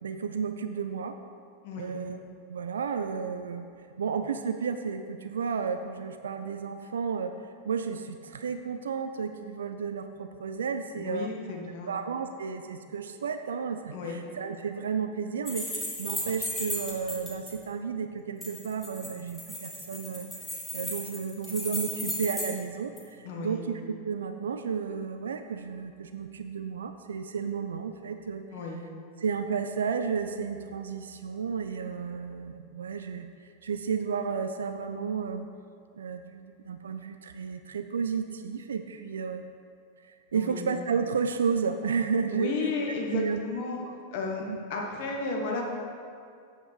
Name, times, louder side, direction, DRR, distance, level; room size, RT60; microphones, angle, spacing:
voice 1, 0.0-1.2 1.8-2.2 2.4-3.7 4.0-7.3 7.6-11.3 11.7-20.3 20.7-28.4 29.2-35.5 35.9-39.4 40.0-43.4 43.8-43.9 44.5-44.6, right 6 dB, 65° right, 8 dB, 0.4 m, -32 dB
voice 2, 1.6-1.9 10.9-11.9 13.9-14.2 23.2-23.6 28.5-28.8 40.3-40.7 42.3-43.8 44.1-44.4 44.7-45.6, left 3 dB, 50° left, 0 dB, 1.4 m, -33 dB
sound 1, 15.5-17.5 18.4-22.6 23.0-23.1, left 1 dB, 10° left, 2.4 m, -35 dB
8.4 x 6.8 x 4.6 m, 2.3 s
figure-of-eight pair, 90°, 0 cm